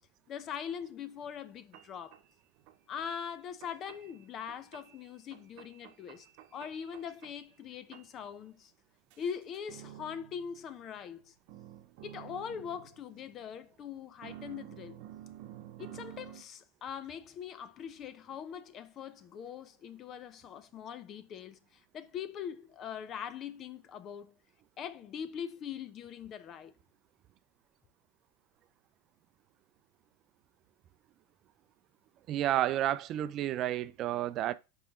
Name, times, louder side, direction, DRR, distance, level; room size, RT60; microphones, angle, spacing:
voice 1, 0.3-2.2 2.9-6.3 6.5-8.7 9.2-11.3 12.0-15.0 15.8-24.3 24.8-26.7, left 8 dB, 40° left, 0.7 m, -42 dB
sound 1, 1.2-1.3 1.7-2.2 2.6-3.1 3.6-4.2 4.5-5.0 5.3-7.6 7.9-8.3 9.1-11.2 11.5-13.6 14.2-16.4, right 12 dB, 60° right, 0.9 m, -51 dB
voice 2, 32.3-34.5, right 12 dB, 45° right, 0.5 m, -31 dB
5.9 x 4.9 x 3.7 m
supercardioid pair, 125°, 0 cm